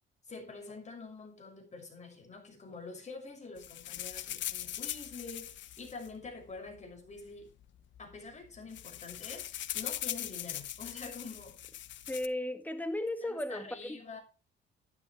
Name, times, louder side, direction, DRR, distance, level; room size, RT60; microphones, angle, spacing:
voice 1, 0.3-7.5 8.0-9.5 9.7-11.5 13.2-14.2, left 4 dB, 35° left, 6.3 m, -46 dB
sound 1, 3.6-6.8 7.6-7.7 7.9-8.2 8.4-12.3, left 12 dB, 70° left, 0.8 m, -40 dB
voice 2, 12.1-14.0, left 1 dB, 10° left, 1.8 m, -35 dB
11.5 x 11.5 x 3.2 m
cardioid pair, 90°, 20 cm